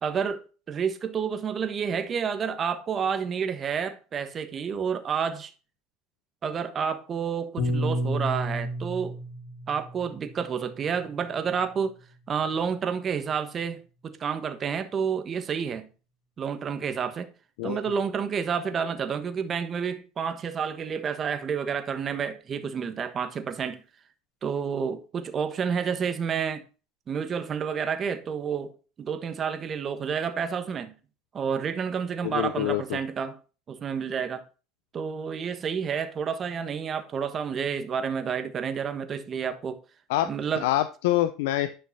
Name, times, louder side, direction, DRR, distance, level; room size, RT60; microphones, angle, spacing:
voice 1, 0.0-5.5 6.4-9.2 9.7-12.0 12.3-15.9 16.4-17.3 17.6-23.8 24.4-26.6 27.1-28.7 29.0-30.9 31.3-33.4 33.7-34.4 34.9-39.8 40.2-40.6, right 6 dB, 30° right, 1.3 m, -30 dB
Piano, 7.6-12.0, equal, 60° left, 4.2 m, -32 dB
voice 2, 32.2-33.0 40.1-40.3 40.6-41.7, left 14 dB, 85° left, 0.6 m, -26 dB
10.0 x 5.8 x 4.1 m
supercardioid pair, 120°, 0 cm